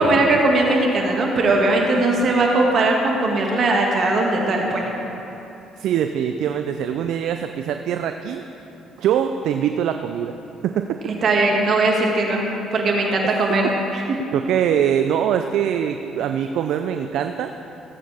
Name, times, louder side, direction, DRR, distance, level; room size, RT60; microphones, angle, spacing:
voice 1, 0.0-4.9 11.2-13.6 13.9-14.0, right 2 dB, 55° right, 0 dB, 2.0 m, -19 dB
voice 2, 5.8-8.4 9.0-10.4 10.6-11.0 13.2-13.3 14.3-17.5, right 9 dB, 70° right, 7 dB, 0.4 m, -23 dB
17.0 x 8.6 x 3.5 m, 2.9 s
supercardioid pair, 65°, 0 cm